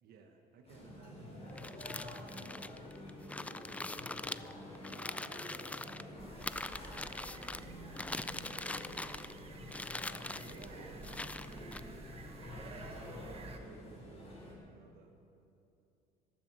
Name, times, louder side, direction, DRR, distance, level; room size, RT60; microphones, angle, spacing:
voice 1, 0.0-3.9 10.4-15.1, right 5 dB, 65° right, 2 dB, 1.3 m, -58 dB
sound 1, 0.6-14.5, left 1 dB, 35° left, 4.5 m, -49 dB
sound 2, 1.5-6.0 6.4-7.6 8.0-9.4 9.7-10.7 11.0-11.8, left 2 dB, 10° left, 0.3 m, -42 dB
voice 2, 4.5-10.1, right 1 dB, 15° right, -2 dB, 4.3 m, -60 dB
sound 3, 6.2-13.6, right 3 dB, 35° right, 1.4 m, -52 dB
14.5 x 14.0 x 6.2 m, 2.8 s
cardioid pair, 110°, 17 cm